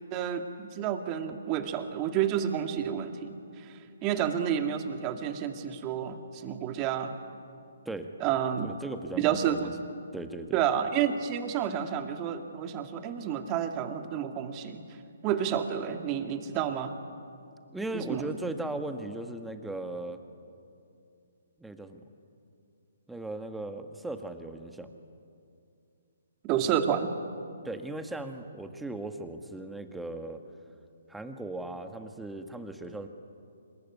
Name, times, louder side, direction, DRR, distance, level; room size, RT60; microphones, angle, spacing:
voice 1, 0.1-3.3 4.0-7.1 8.2-8.7 9.2-9.7 10.5-14.8 15.2-17.0 17.9-18.4 26.4-27.1, right 9 dB, 25° right, 6 dB, 2.2 m, -30 dB
voice 2, 8.6-9.7 10.1-10.6 17.7-20.2 21.6-22.0 23.1-24.9 27.6-30.4 31.1-33.1, right 2 dB, 5° right, 7 dB, 1.6 m, -37 dB
26.0 x 22.5 x 9.7 m, 2.5 s
figure-of-eight pair, 140°, 0 cm